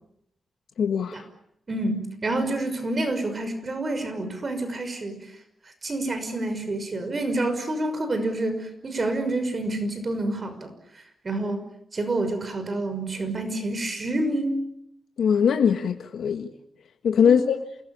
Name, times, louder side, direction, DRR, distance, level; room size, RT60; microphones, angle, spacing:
voice 1, 0.8-1.2 15.2-16.5 17.0-17.6, left 7 dB, 85° left, 1.7 m, -21 dB
voice 2, 1.7-5.2 5.8-10.7 11.2-11.6 11.9-14.6 17.2-17.5, right 2 dB, 40° right, 5.9 m, -28 dB
28.5 x 20.5 x 8.7 m
wide cardioid pair, 105°, 0 cm